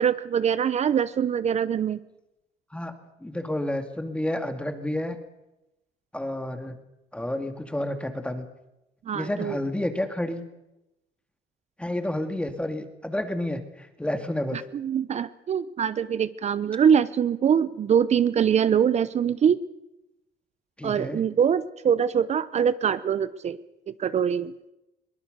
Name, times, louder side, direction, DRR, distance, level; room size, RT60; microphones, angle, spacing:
voice 1, 0.0-2.0 9.1-9.6 14.5-19.6 20.8-23.6 23.9-24.5, right 8 dB, 40° right, 16 dB, 0.7 m, -23 dB
voice 2, 3.2-5.2 6.1-6.8 7.1-8.4 9.1-10.5 11.8-14.6 20.8-21.2, left 1 dB, 5° left, 7 dB, 2.2 m, -30 dB
22.5 x 19.0 x 6.7 m, 0.93 s
cardioid pair, 110°, 17 cm